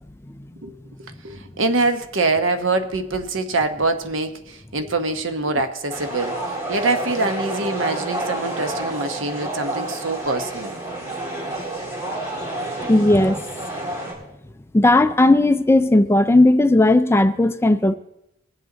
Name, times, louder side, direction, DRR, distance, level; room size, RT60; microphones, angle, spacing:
voice 1, 1.0-6.3 6.7-10.8, right 3 dB, 75° right, 1.0 m, -24 dB
sound 1, 5.9-14.1, right 1 dB, 20° right, 3.9 m, -29 dB
voice 2, 12.9-13.4 14.7-17.9, left 2 dB, 15° left, 0.4 m, -15 dB
21.0 x 8.0 x 3.9 m
head